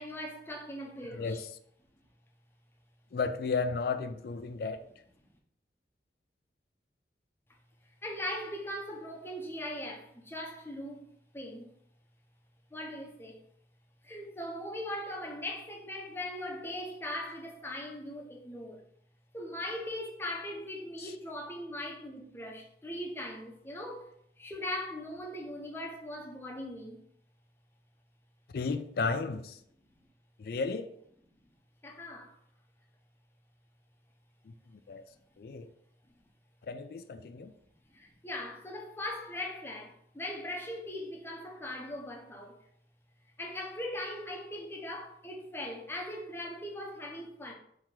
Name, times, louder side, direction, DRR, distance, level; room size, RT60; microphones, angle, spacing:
voice 1, 0.0-1.4 8.0-11.7 12.7-13.4 14.0-18.9 19.3-27.0 31.8-32.3 37.9-42.6 43.4-47.5, left 1 dB, 15° left, 0.7 m, -40 dB
voice 2, 1.1-1.5 3.1-4.8 21.0-21.1 28.5-29.6 30.4-30.9 34.4-35.0 35.4-35.7 36.7-37.5, left 4 dB, 55° left, 0.4 m, -34 dB
4.5 x 2.9 x 3.7 m
head